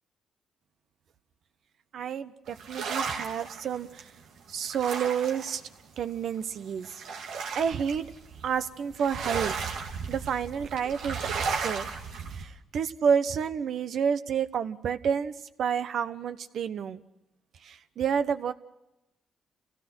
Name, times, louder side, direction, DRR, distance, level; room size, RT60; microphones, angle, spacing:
voice 1, 1.9-4.1 4.5-5.6 6.0-7.0 7.5-8.1 8.4-9.5 10.1-11.2 11.5-11.9 12.3-15.3 15.6-17.0 17.6-18.5, right 7 dB, 65° right, 11 dB, 1.1 m, -29 dB
sound 1, 2.5-5.7 5.9-6.0 6.4-6.5 6.8-12.4, right 5 dB, 85° right, 2.7 m, -35 dB
28.5 x 17.0 x 6.3 m, 0.93 s
cardioid pair, 90°, 0 cm